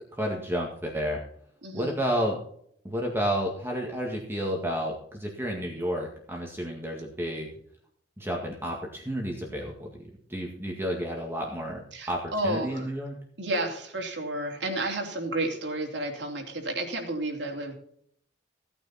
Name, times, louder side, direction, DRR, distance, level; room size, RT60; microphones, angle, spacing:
voice 1, 0.1-1.2 1.7-2.4 2.8-7.5 8.2-13.1, equal, 15° right, -1 dB, 2.0 m, -31 dB
voice 2, 1.6-2.0 11.9-12.9 13.4-17.8, right 1 dB, 70° right, 2 dB, 3.1 m, -31 dB
16.5 x 9.1 x 4.2 m, 0.65 s
head